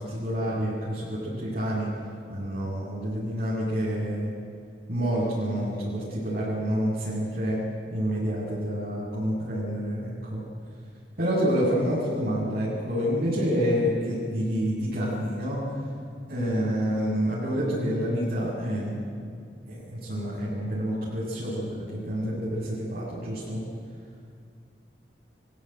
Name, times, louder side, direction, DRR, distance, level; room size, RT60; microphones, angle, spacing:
voice 1, 0.0-1.9 2.3-4.3 4.9-7.6 7.9-10.4 11.2-15.6 16.3-19.1 19.7-23.6, equal, 60° right, -9 dB, 7.6 m, -28 dB
24.5 x 16.5 x 9.4 m, 2.3 s
head